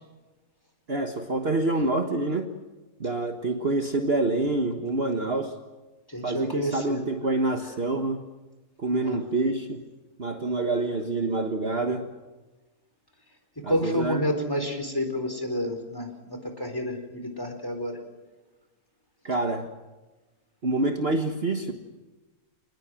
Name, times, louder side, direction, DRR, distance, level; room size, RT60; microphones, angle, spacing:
voice 1, 0.9-2.5 3.0-5.6 6.2-8.2 8.8-9.8 10.2-12.1 13.6-14.2 19.2-19.7 20.6-21.7, right 2 dB, 40° right, 5 dB, 1.7 m, -27 dB
voice 2, 6.1-7.0 8.9-9.2 13.7-17.9, equal, 15° left, 6 dB, 4.2 m, -29 dB
28.0 x 20.0 x 7.7 m, 1.2 s
omnidirectional pair, 1.6 m